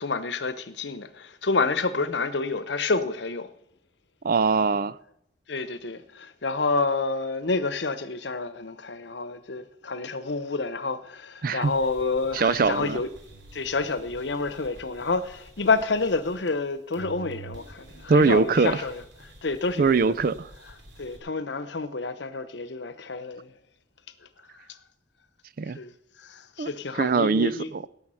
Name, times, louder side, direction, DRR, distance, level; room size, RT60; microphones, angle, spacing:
voice 1, 0.0-3.5 5.5-13.1 13.5-19.0 19.4-20.1 21.0-23.5 25.7-25.9 26.2-27.7, left 3 dB, 70° left, 0.9 m, -29 dB
voice 2, 4.2-5.0 11.4-11.7 12.3-13.0 18.1-18.8 19.8-20.5 25.6-25.8 26.6-26.7 27.0-27.8, right 4 dB, 50° right, 0.4 m, -22 dB
sound 1, 11.6-16.7 16.9-21.2, right 3 dB, 70° right, 3.2 m, -48 dB
17.0 x 7.2 x 5.7 m
head